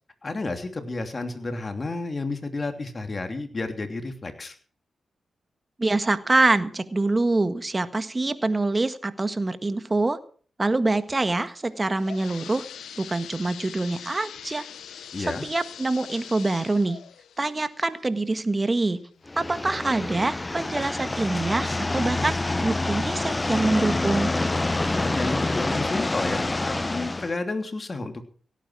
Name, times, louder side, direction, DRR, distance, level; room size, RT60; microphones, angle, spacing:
voice 1, 0.2-4.5 15.1-15.5 25.0-28.2, left 3 dB, 40° left, 6 dB, 3.0 m, -31 dB
voice 2, 5.8-10.2 10.6-12.6 13.0-14.7 15.4-17.0 17.4-19.0 19.4-24.3, right 2 dB, 30° right, 11 dB, 1.6 m, -25 dB
sound 1, 11.6-19.3 19.7-19.8 20.6-20.7 21.1-21.2, left 9 dB, 85° left, 0.6 m, -43 dB
sound 2, 19.3-27.3, left 2 dB, 25° left, 0.6 m, -27 dB
17.0 x 9.2 x 6.3 m, 0.44 s
supercardioid pair, 45°, 0 cm